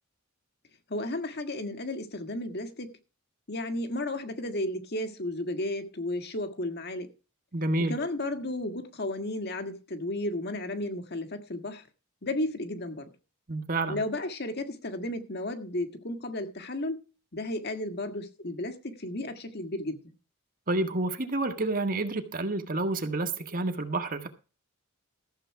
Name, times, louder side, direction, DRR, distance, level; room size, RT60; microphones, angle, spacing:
voice 1, 0.9-2.9 3.5-7.1 7.9-11.9 12.2-13.1 13.9-17.0 17.3-20.0, left 1 dB, 50° left, 1.7 m, -33 dB
voice 2, 7.5-7.9 13.5-14.0 20.7-24.3, right 2 dB, 45° right, 1.7 m, -29 dB
14.0 x 7.7 x 4.7 m
head